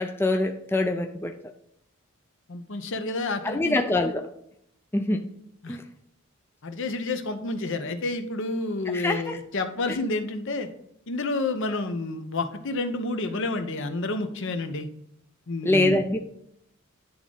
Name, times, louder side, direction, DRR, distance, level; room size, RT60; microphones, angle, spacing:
voice 1, 0.0-1.3 3.4-4.3 4.9-5.2 5.7-5.8 8.9-9.4 9.9-10.0 15.6-16.2, left 2 dB, 10° left, 5 dB, 0.4 m, -24 dB
voice 2, 2.5-3.8 5.6-5.8 6.6-10.7 11.1-14.9 15.5-16.0, left 2 dB, 60° left, 8 dB, 0.8 m, -29 dB
10.5 x 3.6 x 3.8 m, 0.74 s
head